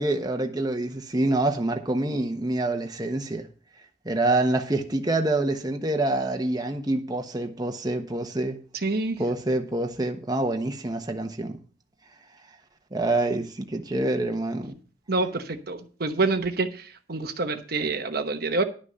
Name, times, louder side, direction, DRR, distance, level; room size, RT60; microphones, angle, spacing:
voice 1, 0.0-3.5 4.0-8.6 9.2-11.6 12.9-14.7, right 2 dB, 20° right, 1.2 m, -26 dB
voice 2, 8.8-9.2 15.1-18.6, right 3 dB, 60° right, 1.1 m, -27 dB
11.5 x 6.1 x 6.8 m
head